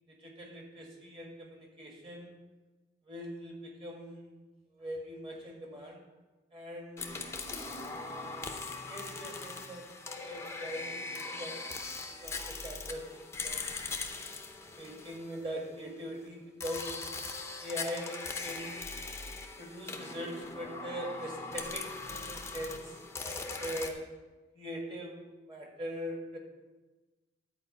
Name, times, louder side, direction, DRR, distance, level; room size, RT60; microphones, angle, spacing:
voice 1, 0.1-2.3 3.1-4.3 4.7-6.0 6.5-7.1 7.8-8.5 8.9-9.9 10.2-11.6 12.1-13.1 13.4-13.9 14.1-14.3 14.8-17.1 17.6-19.0 19.6-24.0 24.5-26.4, equal, 25° right, 0 dB, 1.9 m, -42 dB
sound 1, 7.0-15.8 16.6-23.9, left 3 dB, 15° left, 0.7 m, -40 dB
10.5 x 4.8 x 7.8 m, 1.2 s
head